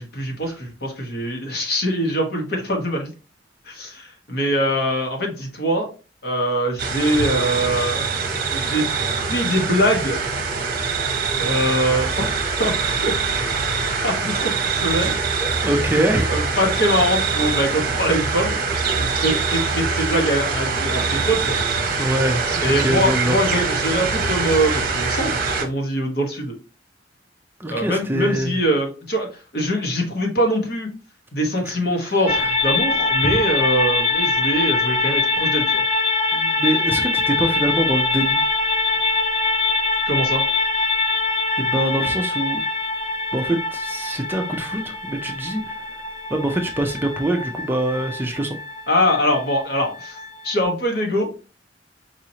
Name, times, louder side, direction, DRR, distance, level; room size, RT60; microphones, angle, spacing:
voice 1, 0.0-3.1 3.6-5.9 6.2-8.1 8.5-10.2 11.4-13.2 13.7-15.1 16.3-18.6 18.9-21.6 22.6-26.6 27.7-30.9 31.3-35.8 40.1-40.4 48.9-50.2 50.4-51.3, equal, 60° left, 1.3 m, -23 dB
sound 1, 6.8-25.6, right 4 dB, 50° right, 0.8 m, -23 dB
voice 2, 15.4-16.4 22.0-23.4 27.6-28.6 31.7-31.8 32.4-32.5 33.2-33.3 36.3-38.4 41.6-42.6 43.3-45.8 46.3-48.6, right 1 dB, 10° right, 0.4 m, -24 dB
sound 2, 32.3-50.6, left 3 dB, 40° left, 0.7 m, -23 dB
4.8 x 3.0 x 2.8 m
head